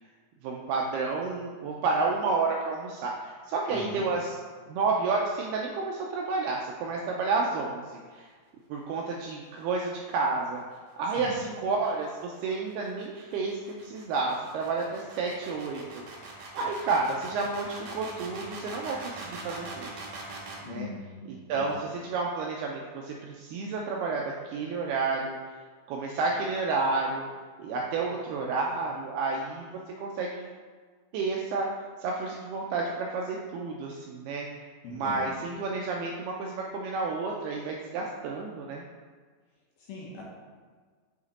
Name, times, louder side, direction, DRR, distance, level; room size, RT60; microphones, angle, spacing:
voice 1, 0.4-4.3 4.7-7.8 8.1-8.3 8.7-10.6 11.0-16.0 16.5-19.9 20.6-20.9 21.3-25.4 25.9-27.3 27.6-29.7 30.0-30.4 31.1-31.7 32.0-38.8, right 4 dB, 85° right, -1 dB, 2.3 m, -30 dB
voice 2, 3.7-4.1 11.2-11.4 20.6-21.8 34.8-35.3 39.8-40.2, left 4 dB, 70° left, -5 dB, 2.4 m, -40 dB
sound 1, 11.4-20.7, right 3 dB, 65° right, 2.9 m, -43 dB
6.6 x 5.0 x 4.1 m, 1.5 s
omnidirectional pair, 5.1 m